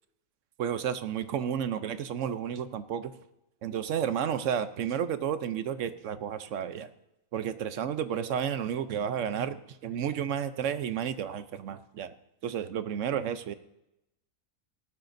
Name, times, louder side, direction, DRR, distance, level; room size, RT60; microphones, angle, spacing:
voice 1, 0.6-3.1 3.6-6.9 7.3-12.1 12.4-13.5, right 8 dB, 65° right, 12 dB, 1.0 m, -32 dB
18.5 x 13.0 x 2.6 m, 0.87 s
omnidirectional pair, 1.4 m